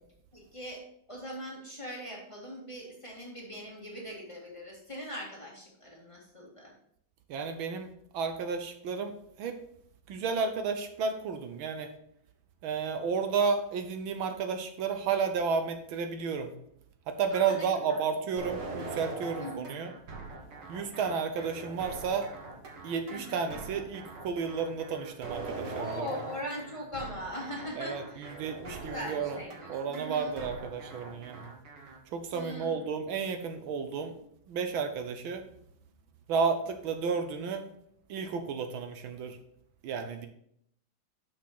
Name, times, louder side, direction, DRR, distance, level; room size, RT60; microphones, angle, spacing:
voice 1, 0.3-0.8 1.1-6.7 17.3-18.0 19.4-19.7 23.1-23.6 25.7-28.3 28.6-30.3 32.3-32.9, equal, 15° left, -3 dB, 1.9 m, -41 dB
voice 2, 7.3-7.9 8.1-9.1 9.4-9.6 10.1-11.9 12.6-16.5 17.1-19.9 20.7-22.3 22.8-26.2 27.8-29.4 29.7-31.5 32.1-34.1 34.5-35.4 36.3-37.7 38.1-39.4 39.8-40.3, right 5 dB, 80° right, 7 dB, 1.7 m, -32 dB
sound 1, 18.4-32.0, right 3 dB, 60° right, 2.1 m, -42 dB
6.2 x 6.1 x 5.8 m, 0.70 s
omnidirectional pair, 2.2 m